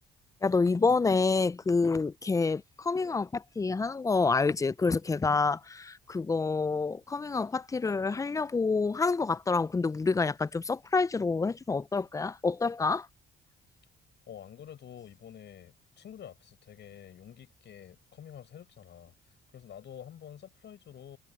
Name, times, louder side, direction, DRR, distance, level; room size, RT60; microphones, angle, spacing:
voice 1, 0.4-13.1, left 4 dB, 15° left, 0.4 m, -28 dB
voice 2, 14.3-19.1 19.5-21.2, left 9 dB, 65° left, 7.6 m, -48 dB
cardioid pair, 90°, 20 cm